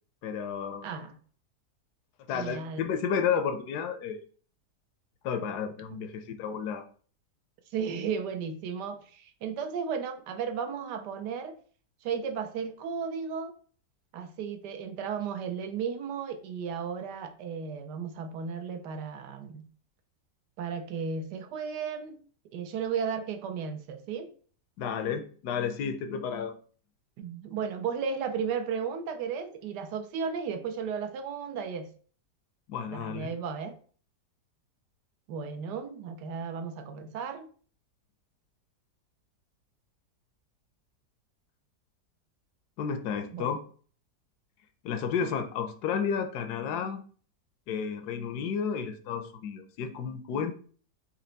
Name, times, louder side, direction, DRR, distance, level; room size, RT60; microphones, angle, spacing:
voice 1, 0.2-0.9 2.3-4.2 5.2-6.8 24.8-26.5 32.7-33.3 42.8-43.6 44.8-47.0 47.7-50.5, left 7 dB, 75° left, 8 dB, 1.1 m, -32 dB
voice 2, 0.8-1.2 2.3-2.9 5.9-6.0 7.7-11.6 12.0-13.5 14.1-19.6 20.6-24.3 27.2-31.9 32.9-33.8 35.3-37.5 43.3-43.5, right 6 dB, 80° right, 7 dB, 1.3 m, -34 dB
4.4 x 2.9 x 3.9 m, 0.43 s
omnidirectional pair, 1.8 m